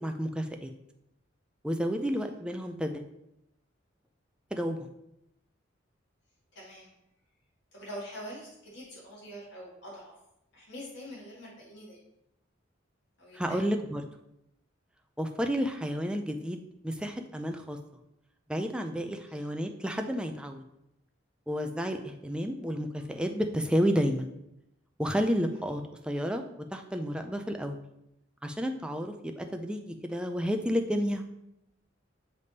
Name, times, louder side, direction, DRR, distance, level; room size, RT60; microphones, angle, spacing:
voice 1, 0.0-0.7 1.6-3.0 4.5-4.9 13.3-14.0 15.2-17.8 18.5-20.6 21.5-24.3 25.0-26.4 26.7-27.8 28.4-31.2, equal, 5° right, 5 dB, 0.4 m, -31 dB
voice 2, 6.5-6.9 7.7-10.1 10.5-12.0 13.2-13.6 19.3-19.5 25.5-25.6, equal, 60° left, -6 dB, 2.2 m, -44 dB
6.7 x 3.4 x 4.1 m, 0.83 s
head